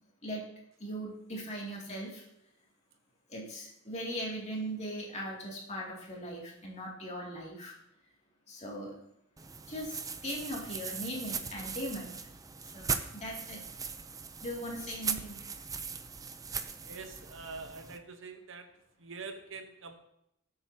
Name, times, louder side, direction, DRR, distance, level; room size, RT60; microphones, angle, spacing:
voice 1, 0.8-2.2 3.3-7.7 8.5-8.9 9.7-12.1 12.7-13.6 14.4-15.4, equal, 35° left, -2 dB, 2.6 m, -39 dB
sound 1, 9.4-18.0, right 5 dB, 15° right, 0.5 m, -39 dB
voice 2, 16.8-18.7 19.0-19.9, right 4 dB, 65° right, 6 dB, 1.1 m, -45 dB
19.5 x 8.0 x 2.9 m, 0.79 s
head